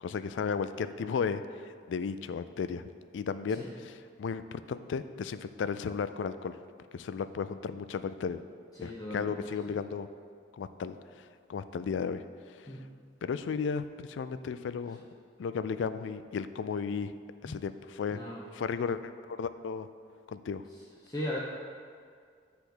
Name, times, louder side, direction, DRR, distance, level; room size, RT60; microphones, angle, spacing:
voice 1, 0.0-2.8 3.1-6.6 6.9-8.4 8.8-10.1 10.6-12.7 13.2-15.0 15.4-17.1 17.4-18.2 18.5-19.9 20.3-20.6, left 5 dB, 80° left, 12 dB, 0.3 m, -34 dB
voice 2, 8.7-9.3 12.7-12.8 17.4-17.6 18.1-18.4 20.7-21.4, left 1 dB, 20° left, -6 dB, 0.7 m, -38 dB
9.9 x 3.5 x 6.1 m, 2.1 s
head